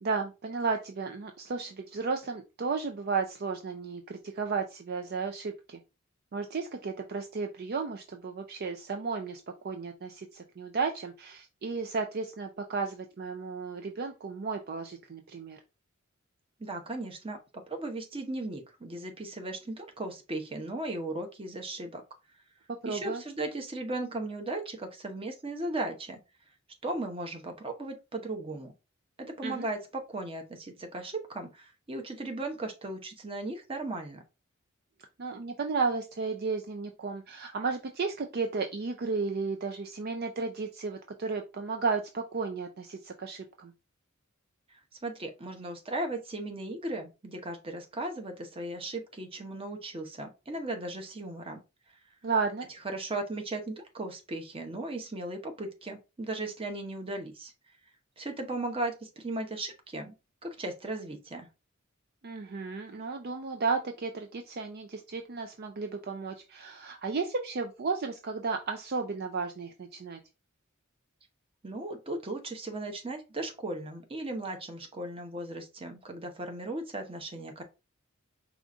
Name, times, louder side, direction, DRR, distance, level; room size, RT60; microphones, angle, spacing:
voice 1, 0.0-5.8 6.3-15.6 22.8-23.2 29.4-29.7 35.2-43.7 52.2-52.7 62.2-70.2, right 4 dB, 50° right, 0.5 m, -33 dB
voice 2, 16.6-22.0 22.8-26.2 26.8-28.7 29.2-34.2 45.0-51.6 52.8-57.5 58.2-60.1 60.4-61.5 71.6-77.6, right 2 dB, 25° right, 0.9 m, -37 dB
4.9 x 2.4 x 3.7 m
head